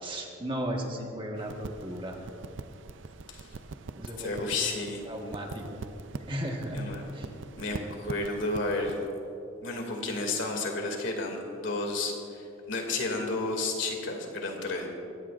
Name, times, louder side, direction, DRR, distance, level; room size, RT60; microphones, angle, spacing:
voice 1, 0.0-2.2 3.9-4.4 5.0-5.8 6.3-6.8 7.1-7.3, right 1 dB, 25° right, 0 dB, 1.5 m, -35 dB
sound 1, 1.3-9.1, right 3 dB, 65° right, 0.5 m, -43 dB
voice 2, 4.2-5.0 6.7-7.0 7.6-9.0 9.6-14.9, left 2 dB, 65° left, 1 dB, 2.4 m, -32 dB
22.5 x 17.5 x 2.5 m, 2.7 s
head